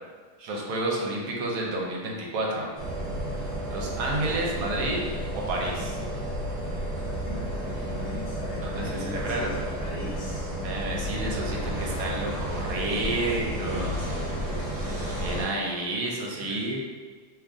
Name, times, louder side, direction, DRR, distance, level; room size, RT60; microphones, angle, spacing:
voice 1, 0.4-2.7 3.7-5.0 5.3-6.0 8.5-9.6 10.6-14.2 15.1-16.8, right 2 dB, 70° right, -1 dB, 1.0 m, -30 dB
sound 1, 2.7-15.4, equal, 40° right, 0.8 m, -32 dB
voice 2, 6.9-10.5 13.4-14.7 16.3-16.7, left 2 dB, 65° left, -5 dB, 0.7 m, -40 dB
3.0 x 2.4 x 3.5 m, 1.5 s
omnidirectional pair, 1.7 m